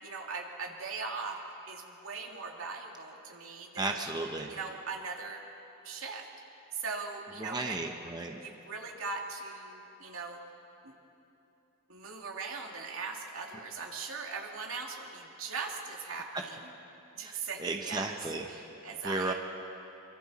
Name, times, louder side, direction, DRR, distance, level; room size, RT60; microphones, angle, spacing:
voice 1, 0.0-1.4 1.7-4.0 4.5-5.4 5.8-6.3 6.7-7.8 8.3-10.4 10.8-10.9 11.9-16.7 17.1-18.1 18.5-19.3, right 4 dB, 80° right, 0 dB, 2.4 m, -40 dB
voice 2, 3.8-4.5 7.4-8.4 17.2-18.5 19.0-19.3, right 2 dB, 20° right, 3 dB, 0.9 m, -34 dB
27.0 x 24.0 x 4.2 m, 2.9 s
head